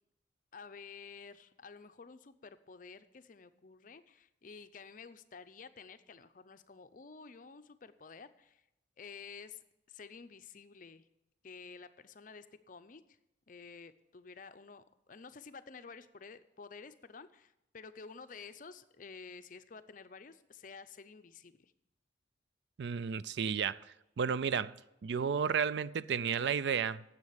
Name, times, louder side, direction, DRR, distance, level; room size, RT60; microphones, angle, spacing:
voice 1, 0.5-8.6 9.0-11.1 11.4-13.0 13.5-21.7, left 5 dB, 45° left, 0.6 m, -51 dB
voice 2, 22.8-23.8 24.2-24.7 25.0-27.0, right 6 dB, 65° right, 0.4 m, -32 dB
9.6 x 7.5 x 8.8 m
head